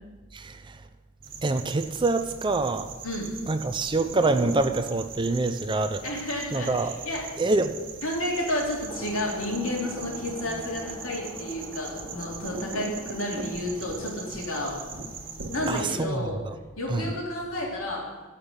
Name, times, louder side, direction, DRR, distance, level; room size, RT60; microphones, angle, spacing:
voice 1, 0.3-0.8 1.4-2.9 3.5-6.0 6.5-6.9 7.4-7.8 15.7-16.5 16.9-17.1, right 3 dB, 25° right, 9 dB, 0.5 m, -26 dB
sound 1, 1.2-15.8, right 4 dB, 60° right, 1.5 m, -40 dB
voice 2, 3.0-3.3 6.0-7.2 8.0-14.8 15.5-16.4 16.8-18.1, left 1 dB, 75° left, -2 dB, 3.2 m, -31 dB
sound 2, 8.9-15.7, left 1 dB, 15° left, 1.1 m, -45 dB
15.0 x 5.8 x 6.9 m, 1.3 s
head